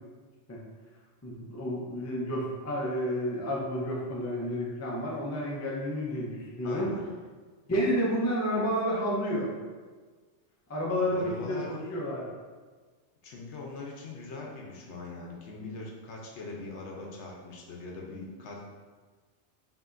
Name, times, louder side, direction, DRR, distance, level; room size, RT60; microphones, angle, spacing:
voice 1, 1.2-6.9 7.7-9.5 10.7-12.3, equal, 20° left, -4 dB, 0.4 m, -30 dB
voice 2, 6.6-7.0 11.0-11.7 13.2-18.6, left 3 dB, 75° left, -1 dB, 0.9 m, -41 dB
5.0 x 2.8 x 2.5 m, 1.4 s
omnidirectional pair, 1.2 m